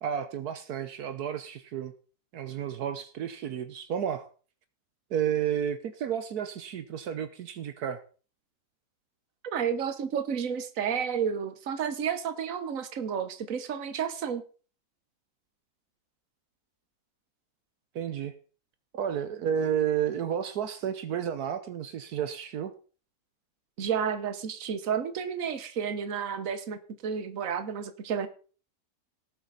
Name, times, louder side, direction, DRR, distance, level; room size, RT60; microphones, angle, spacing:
voice 1, 0.0-1.9 2.3-4.3 5.1-8.0 17.9-18.3 18.9-22.7, right 9 dB, 75° right, 10 dB, 1.4 m, -31 dB
voice 2, 9.4-14.4 23.8-28.3, right 7 dB, 60° right, 10 dB, 1.5 m, -31 dB
18.0 x 7.8 x 4.1 m, 0.39 s
omnidirectional pair, 1.7 m